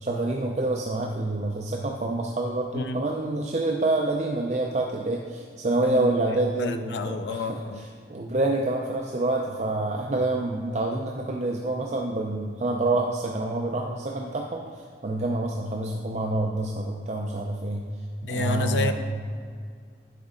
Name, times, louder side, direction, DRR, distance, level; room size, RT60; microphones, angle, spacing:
voice 1, 0.0-17.9 18.3-18.9, right 2 dB, 40° right, 0 dB, 0.5 m, -27 dB
voice 2, 6.6-7.9 18.2-18.9, left 3 dB, 80° left, 8 dB, 0.5 m, -30 dB
9.9 x 5.2 x 3.7 m, 2.1 s
head